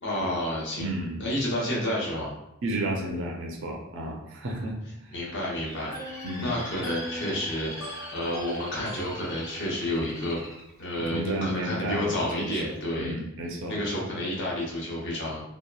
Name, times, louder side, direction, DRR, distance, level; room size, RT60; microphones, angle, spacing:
voice 1, 0.0-0.9 1.2-2.3 5.1-10.4 10.8-13.1 13.7-15.4, left 1 dB, 55° left, -4 dB, 0.8 m, -30 dB
voice 2, 0.8-1.2 2.6-4.7 5.0-5.1 6.2-6.5 11.0-12.6 13.0-13.8, right 1 dB, 60° right, 0 dB, 0.5 m, -32 dB
Bird, 5.5-11.6 12.1-12.5, left 1 dB, 15° left, 0.5 m, -42 dB
sound 1, 5.9-9.7, equal, 80° left, 1.0 m, -41 dB
2.8 x 2.3 x 2.3 m, 0.82 s
head